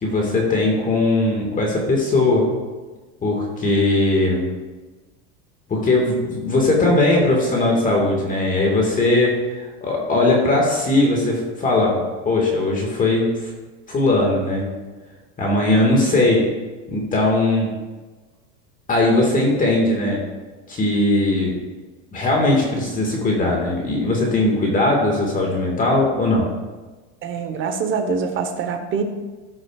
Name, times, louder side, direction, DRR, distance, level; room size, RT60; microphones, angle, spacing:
voice 1, 0.0-2.5 3.2-4.5 5.7-13.5 13.9-14.7 15.4-16.5 16.9-17.7 18.9-20.2 20.7-21.6 22.1-26.5, left 2 dB, 20° left, -1 dB, 1.7 m, -19 dB
voice 2, 27.2-29.0, right 5 dB, 30° right, 7 dB, 1.0 m, -24 dB
14.0 x 6.4 x 2.4 m, 1.3 s
supercardioid pair, 135°, 38 cm